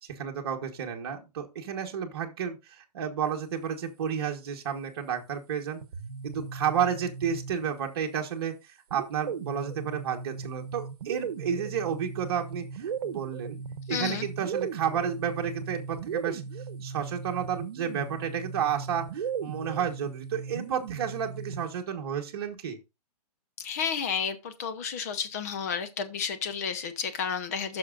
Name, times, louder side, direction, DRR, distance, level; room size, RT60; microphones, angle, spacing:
voice 1, 0.0-5.8 6.2-13.6 13.9-16.4 16.8-22.8, right 8 dB, 35° right, 1.3 m, -31 dB
sound 1, 5.8-7.9 8.9-21.8, right 6 dB, 65° right, 1.0 m, -37 dB
voice 2, 13.9-14.3 23.6-27.8, left 6 dB, 25° left, 0.7 m, -31 dB
14.0 x 6.1 x 2.5 m
hypercardioid pair, 175°, 20 cm